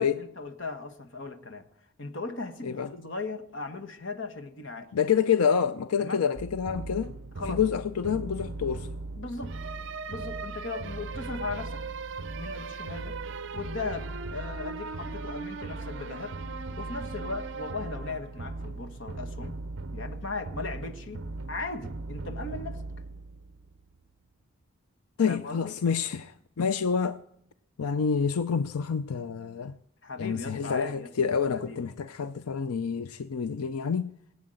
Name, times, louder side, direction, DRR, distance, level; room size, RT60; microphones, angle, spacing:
voice 1, 0.0-1.7 2.0-4.9 6.0-6.2 7.4-7.6 9.2-9.6 10.1-11.8 12.4-13.2 13.5-16.4 16.8-19.6 19.9-21.2 21.5-22.8 25.3-25.7 30.0-31.1 31.5-31.8, left 3 dB, 55° left, 1.4 m, -37 dB
voice 2, 4.9-7.2 7.5-8.9 25.2-27.2 27.8-29.7 30.2-34.1, left 6 dB, 85° left, 0.5 m, -28 dB
sound 1, 6.4-24.0, right 3 dB, 55° right, 0.6 m, -38 dB
19.0 x 8.5 x 7.8 m
head